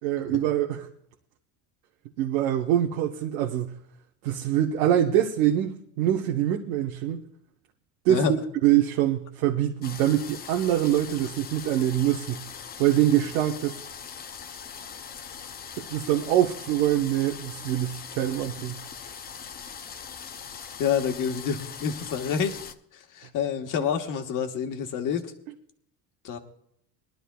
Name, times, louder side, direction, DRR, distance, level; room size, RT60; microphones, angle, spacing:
voice 1, 0.0-0.9 2.2-3.7 4.2-7.2 8.0-12.4 12.8-13.8 15.8-18.8, right 12 dB, 85° right, 1.1 m, -24 dB
sound 1, 9.8-22.7, left 7 dB, 25° left, 0.5 m, -41 dB
voice 2, 20.8-22.6 22.9-25.3 26.2-26.4, left 7 dB, 50° left, 1.4 m, -28 dB
22.0 x 12.0 x 2.3 m
cardioid pair, 140°, 42 cm